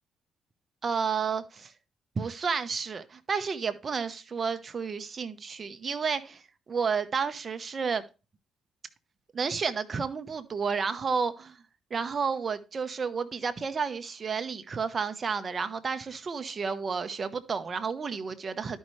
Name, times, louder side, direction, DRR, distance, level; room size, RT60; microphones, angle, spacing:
voice 1, 0.8-1.7 2.1-8.0 9.3-11.6 11.9-18.8, right 5 dB, 40° right, 1.0 m, -31 dB
12.0 x 5.5 x 3.2 m
cardioid pair, 90°, 0 cm